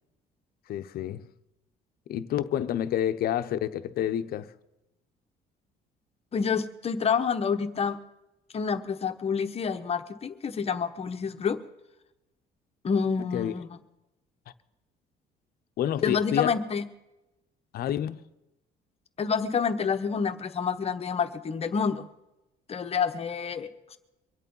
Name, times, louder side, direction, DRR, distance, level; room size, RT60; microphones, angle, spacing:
voice 1, 0.7-1.3 2.1-4.5 13.3-13.5 15.8-16.6 17.7-18.2, left 11 dB, 65° left, 0.8 m, -29 dB
voice 2, 6.3-8.0 8.5-11.6 12.8-13.8 16.0-16.8 19.2-22.1 22.7-24.0, left 6 dB, 35° left, 1.0 m, -28 dB
23.5 x 8.4 x 5.5 m
cardioid pair, 110°, 17 cm